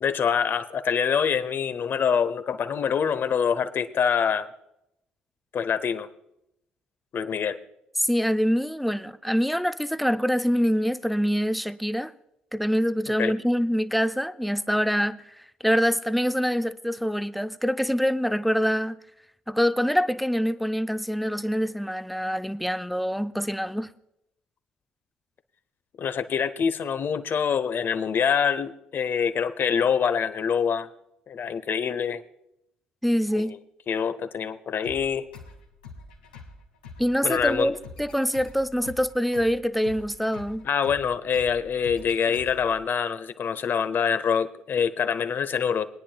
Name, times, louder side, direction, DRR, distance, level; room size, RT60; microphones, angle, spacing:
voice 1, 0.0-4.5 5.5-6.1 7.1-7.6 13.2-13.3 26.0-30.9 31.3-32.2 33.4-33.6 33.9-35.2 37.2-37.7 40.6-45.8, left 7 dB, 50° left, 0.8 m, -25 dB
voice 2, 8.0-12.1 12.5-15.2 15.6-19.0 19.5-23.9 33.0-33.6 37.0-40.7, equal, ahead, 0.5 m, -25 dB
sound 1, 34.8-42.8, left 3 dB, 85° left, 1.6 m, -46 dB
22.0 x 10.0 x 2.3 m
hypercardioid pair, 50°, 5 cm